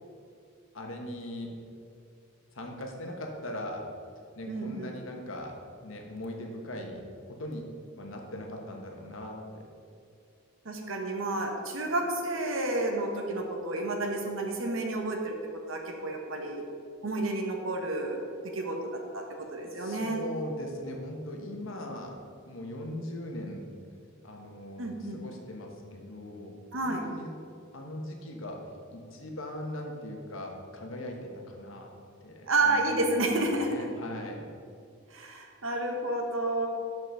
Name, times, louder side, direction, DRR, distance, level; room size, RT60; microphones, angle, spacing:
voice 1, 0.7-1.5 2.5-3.9 4.4-5.5 5.8-7.7 8.0-9.6 19.8-22.2 22.5-23.7 24.2-26.6 26.8-27.3 27.7-28.6 28.9-31.9 32.2-33.3 33.6-34.5, left 1 dB, 70° left, 2 dB, 1.2 m, -40 dB
voice 2, 4.5-5.0 10.6-15.4 15.7-16.6 17.0-18.2 18.5-18.8 19.1-20.3 24.8-25.2 26.7-27.0 32.5-33.7 35.1-36.7, right 2 dB, 70° right, 2 dB, 1.2 m, -30 dB
5.9 x 5.7 x 6.3 m, 2.3 s
head